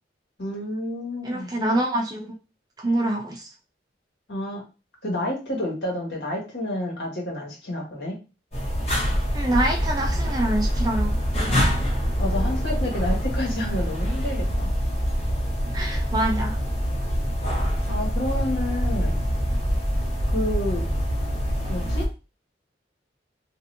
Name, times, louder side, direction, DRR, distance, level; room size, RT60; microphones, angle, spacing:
voice 1, 0.4-1.5 4.3-4.6 5.0-8.1 12.2-14.7 17.9-19.3 20.3-20.8 21.7-22.1, left 1 dB, 70° left, -2 dB, 1.4 m, -29 dB
voice 2, 1.2-2.4 2.8-3.5 9.3-11.2 15.7-16.6, right 1 dB, 20° right, 0 dB, 0.6 m, -25 dB
sound 1, 8.5-22.1, equal, 35° left, 0.9 m, -25 dB
3.2 x 2.7 x 2.6 m, 0.30 s
head